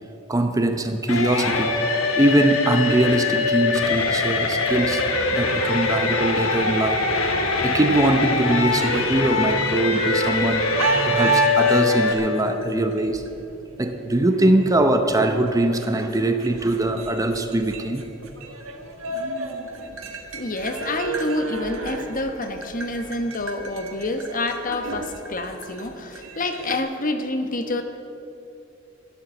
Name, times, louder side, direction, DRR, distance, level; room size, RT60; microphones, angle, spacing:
voice 1, 0.3-1.8 2.2-5.0 5.3-7.1 7.6-13.2 13.8-18.1, right 1 dB, 15° right, 7 dB, 0.7 m, -22 dB
sound 1, 1.1-12.1, left 3 dB, 90° left, 1.7 m, -22 dB
sound 2, 8.4-10.4 10.8-26.8, right 3 dB, 80° right, 1.7 m, -32 dB
voice 2, 20.3-27.8, left 2 dB, 40° left, 7 dB, 1.1 m, -28 dB
12.5 x 12.0 x 7.8 m, 2.8 s
head